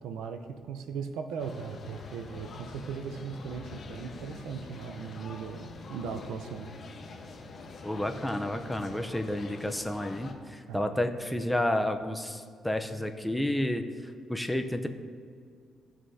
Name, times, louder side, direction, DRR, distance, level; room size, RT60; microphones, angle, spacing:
voice 1, 0.0-6.7 10.7-10.9, right 6 dB, 90° right, 7 dB, 0.7 m, -38 dB
sound 1, 1.4-10.3, left 3 dB, 45° left, 1.1 m, -45 dB
voice 2, 7.8-13.8 14.3-14.9, left 1 dB, 5° left, 6 dB, 0.7 m, -30 dB
17.0 x 6.2 x 2.8 m, 2.1 s
cardioid pair, 90°, 0 cm